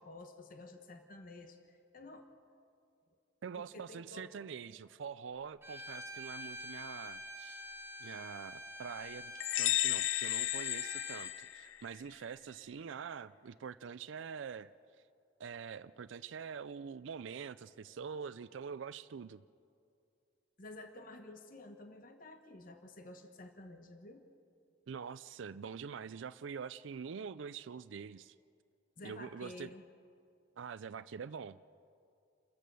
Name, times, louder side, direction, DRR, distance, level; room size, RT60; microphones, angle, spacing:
voice 1, 0.0-2.3 3.6-4.3 20.6-24.3 29.0-29.8, left 2 dB, 45° left, 6 dB, 1.1 m, -51 dB
voice 2, 3.4-7.6 8.0-14.7 15.4-19.4 24.9-28.4 29.0-29.7 30.6-31.6, right 6 dB, 70° right, 13 dB, 0.4 m, -45 dB
Bowed string instrument, 5.6-11.4, left 1 dB, 10° right, 1.1 m, -47 dB
sound 1, 9.4-12.0, left 16 dB, 90° left, 0.4 m, -33 dB
28.5 x 14.0 x 6.8 m, 2.5 s
head